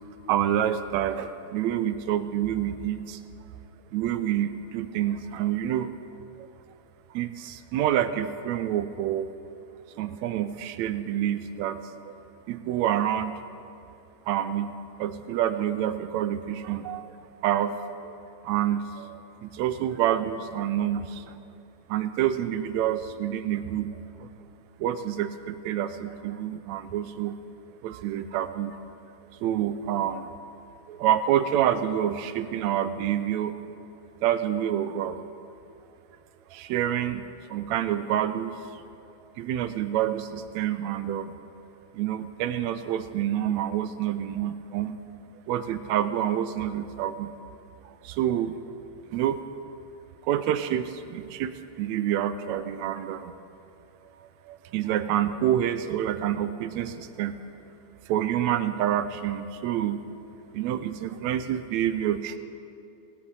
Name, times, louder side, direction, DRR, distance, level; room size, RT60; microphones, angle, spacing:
voice 1, 0.3-3.2 3.9-5.9 6.4-6.5 7.1-9.3 10.0-12.1 12.5-13.4 14.3-17.1 17.4-17.8 18.0-18.1 18.4-21.4 21.9-24.3 24.8-27.4 27.8-28.8 29.4-30.3 30.9-33.7 34.2-35.2 36.5-37.2 37.5-38.6 39.4-41.3 41.9-44.9 45.5-47.3 48.0-48.6 49.1-49.4 50.2-53.3 54.5-57.4 58.1-60.1 60.5-62.4, right 11 dB, 80° right, 11 dB, 1.8 m, -27 dB
18.5 x 10.0 x 4.8 m, 2.6 s
omnidirectional pair, 3.3 m